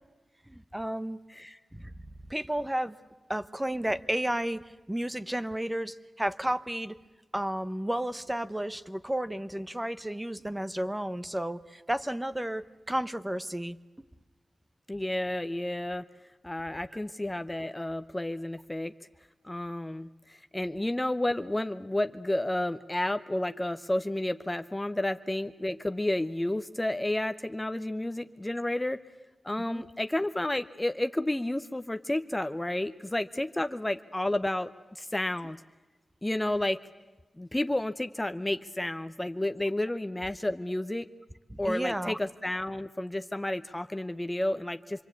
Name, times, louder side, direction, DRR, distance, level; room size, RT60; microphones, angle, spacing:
voice 1, 0.5-1.2 1.7-1.9 2.3-3.0 3.3-7.0 7.3-13.8 29.7-29.8 41.5-42.2, right 1 dB, 10° right, 12 dB, 0.9 m, -32 dB
voice 2, 14.9-16.0 16.4-18.9 19.4-29.0 29.4-35.6 36.2-36.8 37.4-41.1 41.6-45.0, left 1 dB, 15° left, 9 dB, 0.8 m, -31 dB
26.5 x 23.0 x 8.4 m, 1.2 s
cardioid pair, 70°, 0 cm